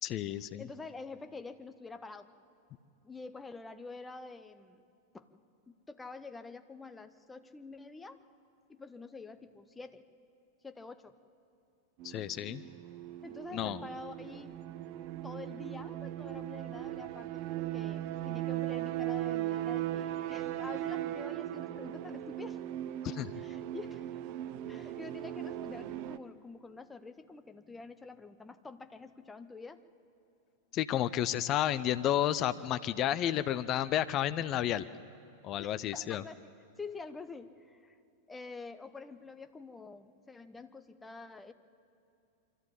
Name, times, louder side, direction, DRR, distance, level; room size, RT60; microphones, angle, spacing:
voice 1, 0.0-0.6 12.0-12.6 13.5-13.8 23.0-23.3 30.7-34.8 35.4-36.2, left 11 dB, 35° left, 14 dB, 0.5 m, -31 dB
voice 2, 0.6-2.3 3.0-4.8 5.1-5.3 5.7-8.2 8.7-10.0 10.6-11.2 13.2-14.6 15.2-22.6 23.4-24.2 24.7-29.8 35.6-38.0 38.3-41.5, left 4 dB, 10° left, 10 dB, 0.8 m, -47 dB
sound 1, 12.0-26.2, right 14 dB, 45° right, 0.6 m, -38 dB
24.0 x 14.0 x 8.6 m, 2.7 s
figure-of-eight pair, 90°, 0 cm